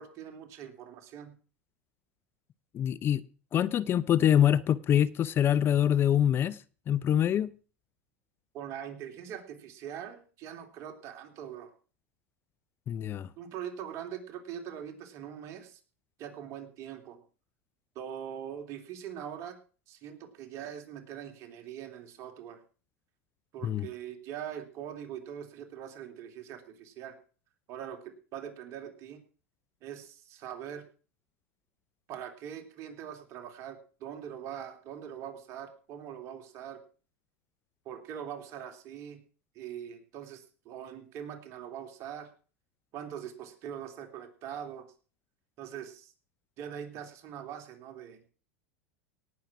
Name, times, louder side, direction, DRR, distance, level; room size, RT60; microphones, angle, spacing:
voice 1, 0.0-1.3 8.5-11.7 13.4-15.8 16.2-17.2 17.9-19.6 19.9-22.6 23.5-27.2 27.7-29.2 29.8-30.8 32.1-36.8 37.8-39.2 39.5-42.3 42.9-44.9 45.6-46.1 46.6-48.2, right 9 dB, 50° right, 3.1 m, -42 dB
voice 2, 2.7-3.2 3.5-6.6 6.9-7.5 12.9-13.3 23.6-23.9, left 10 dB, 35° left, 0.6 m, -25 dB
18.0 x 7.5 x 6.1 m
hypercardioid pair, 105°, 7 cm